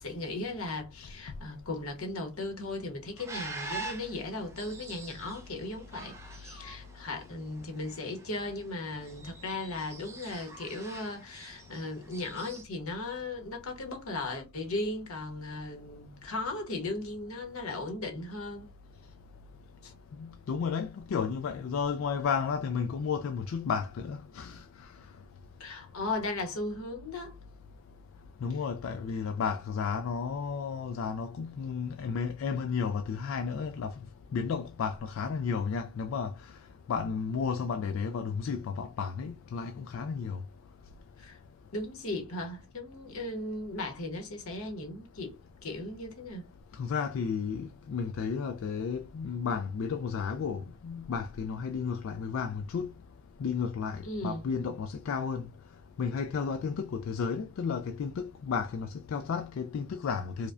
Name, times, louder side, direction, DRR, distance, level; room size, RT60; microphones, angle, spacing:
voice 1, 0.0-18.7 19.8-19.9 25.6-27.3 41.2-41.4 41.7-46.4 54.0-54.4, left 2 dB, 85° left, 1.0 m, -37 dB
sound 1, 3.2-12.6, right 3 dB, 15° right, 0.6 m, -45 dB
voice 2, 20.2-24.6 28.4-34.0 34.3-36.3 36.9-40.4 46.8-52.9 53.4-55.5 56.0-60.5, left 6 dB, 70° left, 0.3 m, -33 dB
4.8 x 2.1 x 2.4 m
head